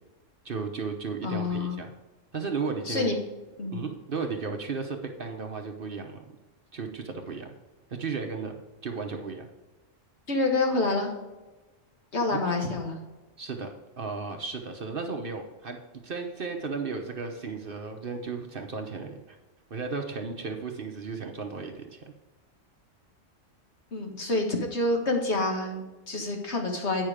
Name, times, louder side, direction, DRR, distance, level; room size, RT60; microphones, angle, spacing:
voice 1, 0.4-1.9 2.3-3.1 3.7-6.2 6.7-7.5 7.9-9.5 12.3-12.4 13.4-15.8 16.0-19.4 19.7-22.0, right 4 dB, 50° right, 4 dB, 1.0 m, -34 dB
voice 2, 1.2-1.8 2.9-3.2 3.6-3.8 10.3-11.1 12.1-13.0 23.9-27.0, left 2 dB, 60° left, 1 dB, 1.8 m, -27 dB
9.0 x 5.6 x 4.9 m, 1.2 s
omnidirectional pair, 1.3 m